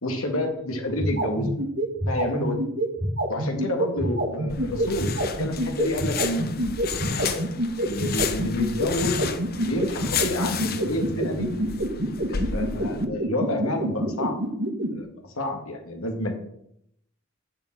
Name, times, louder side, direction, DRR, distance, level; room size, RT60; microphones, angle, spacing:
voice 1, 0.0-1.5 2.1-2.6 3.3-7.4 7.8-9.3 9.6-11.5 12.3-14.4 14.9-15.1 15.4-16.3, left 1 dB, 75° left, 3 dB, 2.1 m, -29 dB
sound 1, 0.8-14.9, right 1 dB, 55° right, 2.9 m, -26 dB
sound 2, 4.5-13.0, left 6 dB, 45° left, 0.9 m, -32 dB
8.9 x 7.0 x 7.5 m, 0.75 s
head